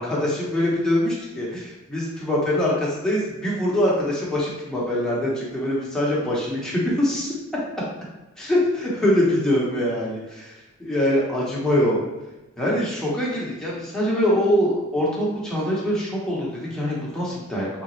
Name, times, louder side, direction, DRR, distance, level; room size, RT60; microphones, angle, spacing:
voice 1, 0.0-7.3 8.4-10.5 10.8-12.0 12.6-17.7, left 1 dB, 5° left, -6 dB, 1.1 m, -23 dB
4.0 x 3.5 x 3.2 m, 1.0 s
head